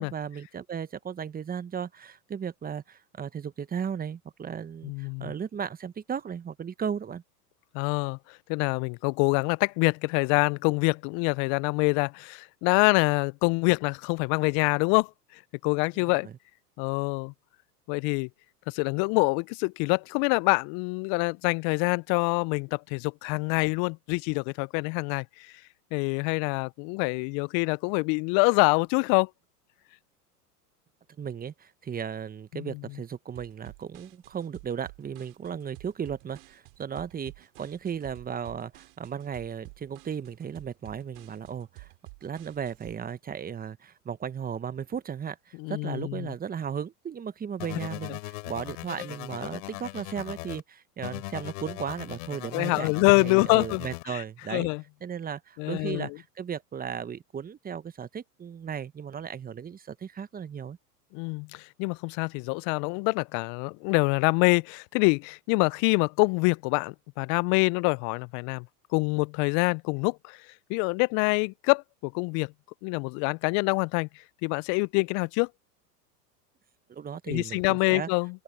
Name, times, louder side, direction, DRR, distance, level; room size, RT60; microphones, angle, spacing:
voice 1, 0.0-7.2 15.9-16.3 31.2-41.9 42.2-54.7 55.0-60.8 76.9-78.1, right 7 dB, 20° right, 1.2 m, -36 dB
voice 2, 4.8-5.3 7.7-15.1 15.6-16.3 16.8-17.3 17.9-18.3 18.7-25.2 25.9-29.3 32.5-32.8 45.6-46.3 52.5-54.2 54.5-54.8 55.6-56.1 61.1-68.7 68.9-70.4 70.7-72.5 72.8-74.1 74.4-75.5 77.3-78.4, left 32 dB, 40° left, 0.6 m, -25 dB
sound 1, 33.4-43.0, right 31 dB, 55° right, 5.1 m, -50 dB
sound 2, 47.6-50.6 51.0-54.0, left 21 dB, 60° left, 4.1 m, -39 dB
hypercardioid pair, 95°, 47 cm